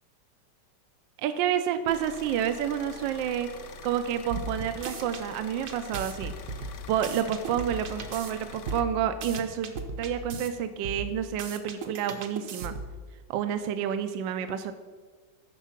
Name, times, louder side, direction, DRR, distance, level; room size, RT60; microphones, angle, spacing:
voice 1, 1.2-3.5 3.8-6.3 6.9-9.7 10.0-12.8 13.3-14.7, right 9 dB, 80° right, 9 dB, 1.3 m, -29 dB
sound 1, 1.9-8.8, left 4 dB, 75° left, 0.7 m, -45 dB
sound 2, 4.3-5.2 5.7-8.3 8.7-10.5 10.8-13.0, right 3 dB, 60° right, 1.0 m, -37 dB
11.5 x 4.6 x 5.8 m, 1.5 s
omnidirectional pair, 2.0 m